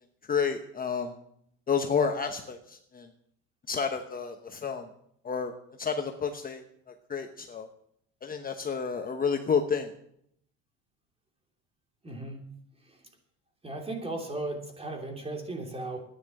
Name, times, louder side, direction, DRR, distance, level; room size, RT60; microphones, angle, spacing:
voice 1, 0.3-1.2 1.7-3.1 3.7-4.9 5.2-5.5 5.8-7.7 8.2-9.9, left 6 dB, 25° left, 5 dB, 1.1 m, -30 dB
voice 2, 12.0-12.5 12.9-13.0 13.6-16.0, right 2 dB, 15° right, 3 dB, 3.1 m, -36 dB
11.5 x 9.8 x 8.0 m, 0.72 s
cardioid pair, 115°, 33 cm